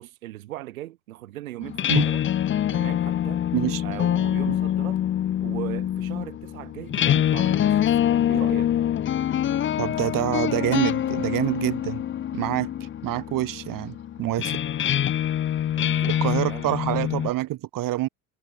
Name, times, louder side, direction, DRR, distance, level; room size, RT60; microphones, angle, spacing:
voice 1, 0.0-2.2 2.7-3.5 3.8-5.0 5.4-8.7 15.8-16.7, right 15 dB, 90° right, 5.2 m, -38 dB
sound 1, 1.6-17.3, left 10 dB, 30° left, 0.7 m, -25 dB
voice 2, 3.5-3.8 4.5-4.6 9.8-12.0 12.3-12.7 13.0-14.6 16.0-18.1, right 15 dB, 55° right, 3.7 m, -26 dB
supercardioid pair, 95°, 40 cm